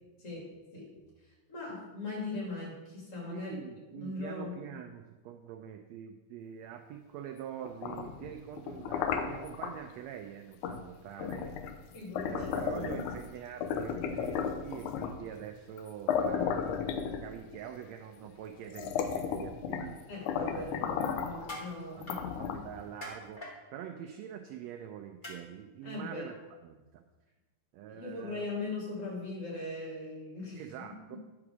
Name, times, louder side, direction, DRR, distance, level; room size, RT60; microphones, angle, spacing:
voice 1, 0.2-0.9 1.2-3.5 3.9-4.8 11.9-12.4 20.1-22.2 25.8-26.3 27.9-30.6 31.1-31.2, left 2 dB, 45° left, -3 dB, 3.1 m, -40 dB
voice 2, 3.3-11.6 12.2-16.8 17.2-20.1 20.5-20.6 21.9-27.0 27.7-28.5 30.5-31.2, right 9 dB, 85° right, 5 dB, 1.5 m, -45 dB
sound 1, 7.6-9.7 10.6-10.8 11.2-13.3 13.6-15.2 15.8-15.9 16.1-17.6 18.2-18.3 18.7-19.9 20.3-21.4 22.0-22.8, left 7 dB, 80° left, 2.1 m, -34 dB
sound 2, 21.3-21.7 22.1-22.2 23.0-23.5 25.2-25.4 26.3-26.4, left 1 dB, 30° left, 0.9 m, -43 dB
9.7 x 4.9 x 6.1 m, 1.2 s
omnidirectional pair, 3.6 m